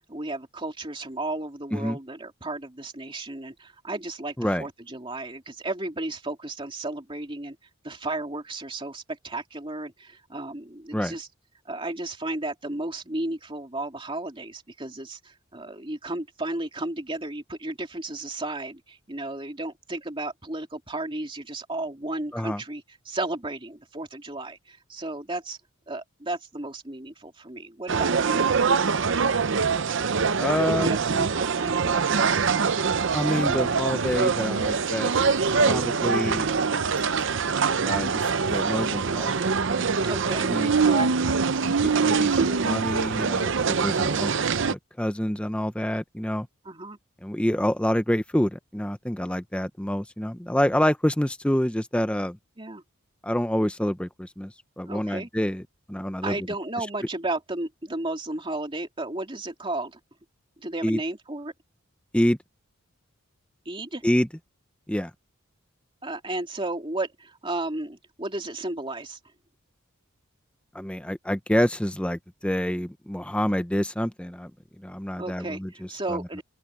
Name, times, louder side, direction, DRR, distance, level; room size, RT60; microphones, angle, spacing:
voice 1, 0.1-7.6 7.8-11.3 11.6-25.6 25.9-28.5 30.8-32.4 40.0-40.5 40.8-41.1 43.9-44.3 46.6-47.0 52.6-52.8 54.8-55.3 56.2-60.0 60.6-61.5 63.6-64.0 66.0-69.2 75.2-76.4, right 2 dB, 25° right, 2.9 m, -34 dB
sound 1, 27.9-44.7, right 5 dB, 60° right, 0.7 m, -24 dB
voice 2, 30.4-31.0 33.1-35.3 35.7-36.5 37.8-39.9 40.5-41.1 41.7-44.3 44.6-46.5 47.2-52.4 53.2-55.6 55.9-56.3 60.8-61.0 62.1-62.4 64.0-64.3 64.9-65.1 70.7-74.5 74.8-75.7 76.1-76.2, equal, 5° left, 0.7 m, -27 dB
open air
head